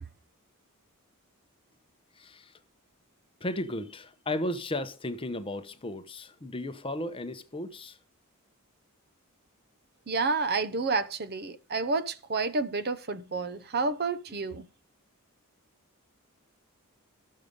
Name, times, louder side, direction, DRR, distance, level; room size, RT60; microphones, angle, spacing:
voice 1, 2.2-2.5 3.4-8.0, left 1 dB, 25° left, 0.8 m, -35 dB
voice 2, 10.1-14.6, right 4 dB, 45° right, 0.8 m, -30 dB
14.0 x 6.5 x 5.2 m
head